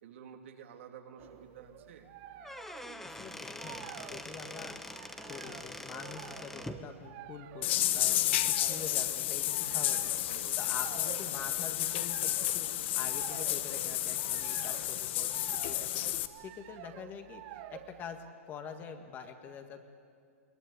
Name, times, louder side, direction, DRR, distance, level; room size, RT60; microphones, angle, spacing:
voice 1, 0.0-2.1 9.6-10.6, right 7 dB, 60° right, 4 dB, 2.8 m, -51 dB
sound 1, 1.2-18.3, right 13 dB, 40° right, 1.0 m, -50 dB
Squeak / Wood, 2.3-6.8, left 1 dB, 5° left, 1.0 m, -44 dB
voice 2, 3.0-10.1 10.6-15.3 15.6-19.9, left 6 dB, 25° left, 6 dB, 1.7 m, -46 dB
sound 2, 7.6-16.3, left 14 dB, 50° left, 1.1 m, -31 dB
22.0 x 19.0 x 9.8 m, 2.2 s
hypercardioid pair, 140°, 8 cm